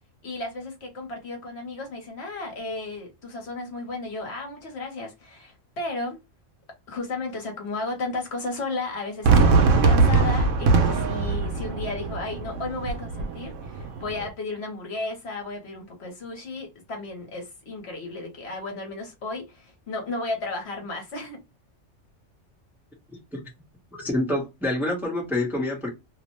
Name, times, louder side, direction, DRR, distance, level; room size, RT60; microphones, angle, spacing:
voice 1, 0.2-6.2 6.9-21.4, left 2 dB, 60° left, 1.1 m, -34 dB
Fireworks, 9.2-14.3, right 4 dB, 85° right, 0.9 m, -21 dB
voice 2, 23.1-23.4 23.9-25.9, left 1 dB, ahead, 0.8 m, -27 dB
2.7 x 2.1 x 2.9 m
omnidirectional pair, 1.3 m